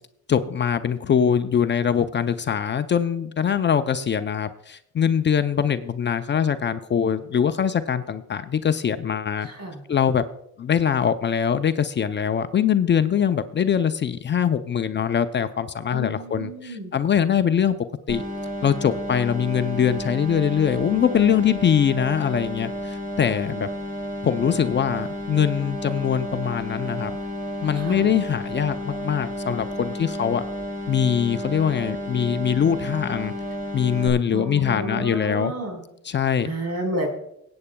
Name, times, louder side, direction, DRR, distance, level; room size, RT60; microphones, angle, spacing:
voice 1, 0.3-9.5 9.9-10.2 10.6-17.8 18.1-18.2 18.6-23.7 24.2-27.1 27.6-30.4 30.9-33.3 33.7-35.5 36.0-36.5, left 8 dB, 35° left, 10 dB, 0.5 m, -22 dB
voice 2, 9.4-9.8 15.9-16.9 27.7-28.1 34.3-35.8 36.4-37.1, right 1 dB, 55° right, 1 dB, 4.2 m, -31 dB
sound 1, 18.1-34.1, equal, 25° right, 3.3 m, -32 dB
25.5 x 8.6 x 2.3 m, 0.77 s
cardioid pair, 90°, 30 cm